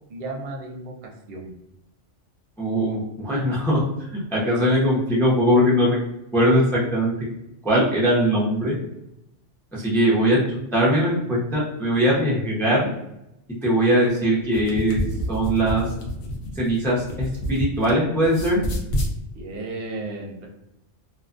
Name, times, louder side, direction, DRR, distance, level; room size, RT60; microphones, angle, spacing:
voice 1, 0.1-1.6 19.3-20.5, right 2 dB, 60° right, 0 dB, 0.8 m, -34 dB
voice 2, 2.6-3.8 4.1-6.0 6.3-7.1 7.6-8.7 9.7-10.4 10.7-12.9 13.6-15.0 15.3-15.8 16.6-18.6, equal, 5° left, -6 dB, 0.5 m, -20 dB
sound 1, 14.5-17.9 18.2-19.1, equal, 70° left, 0.8 m, -28 dB
2.5 x 2.2 x 2.5 m, 0.85 s
omnidirectional pair, 1.2 m